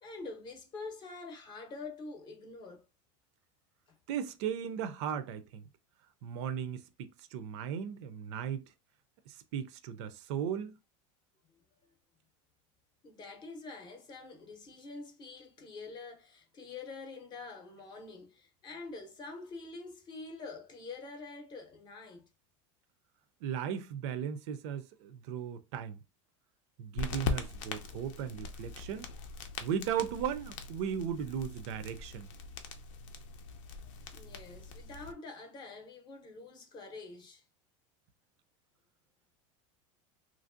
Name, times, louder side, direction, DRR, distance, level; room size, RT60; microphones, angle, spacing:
voice 1, 0.0-2.9 3.9-4.0 11.5-11.9 13.0-22.3 34.1-37.4, left 3 dB, 30° left, 0.7 m, -46 dB
voice 2, 4.1-5.7 6.2-8.6 9.3-10.8 23.4-26.0 26.8-29.1 29.6-32.3, right 8 dB, 65° right, 0.4 m, -36 dB
sound 1, 27.0-35.1, left 5 dB, 75° left, 0.6 m, -41 dB
3.0 x 2.5 x 2.5 m
supercardioid pair, 155°, 16 cm